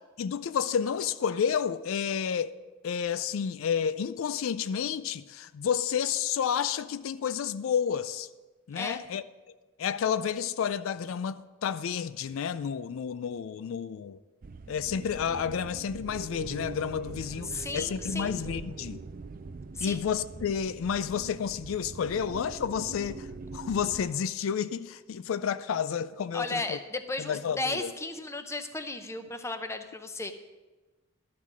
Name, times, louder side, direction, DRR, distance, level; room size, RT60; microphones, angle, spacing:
voice 1, 0.2-2.5 2.8-8.3 8.7-9.2 9.8-14.2 14.7-19.0 19.8-23.3 23.5-26.8 27.2-27.9, left 7 dB, 80° left, 0.4 m, -30 dB
sound 1, 14.4-24.1, right 3 dB, 45° right, 0.4 m, -43 dB
voice 2, 17.4-18.4 19.7-20.0 26.3-30.3, left 2 dB, 15° left, 0.6 m, -35 dB
12.0 x 6.0 x 6.1 m
head